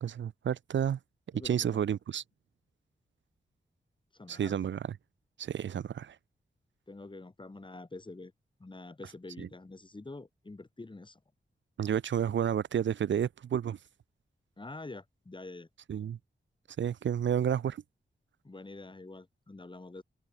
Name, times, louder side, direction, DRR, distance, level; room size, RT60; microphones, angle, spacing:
voice 1, 0.0-1.0 1.4-2.2 4.3-4.8 5.4-6.2 9.4-9.5 11.8-13.8 15.9-16.2 16.8-17.8, right 9 dB, 85° right, 0.6 m, -30 dB
voice 2, 1.3-1.8 4.1-4.6 6.9-8.3 8.6-11.2 14.6-15.7 18.4-20.0, left 2 dB, 25° left, 2.7 m, -46 dB
wide cardioid pair, 100°, 19 cm